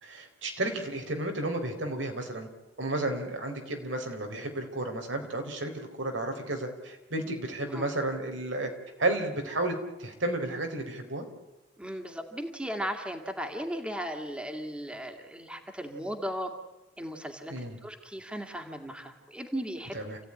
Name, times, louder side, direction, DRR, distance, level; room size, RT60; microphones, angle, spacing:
voice 1, 0.0-2.5 2.8-8.7 9.0-9.7 10.0-11.3 17.5-17.7 19.9-20.2, right 2 dB, 90° right, 4 dB, 4.1 m, -32 dB
voice 2, 11.8-16.5 17.0-20.0, equal, 5° right, 4 dB, 2.2 m, -36 dB
28.0 x 16.0 x 9.9 m, 1.0 s
head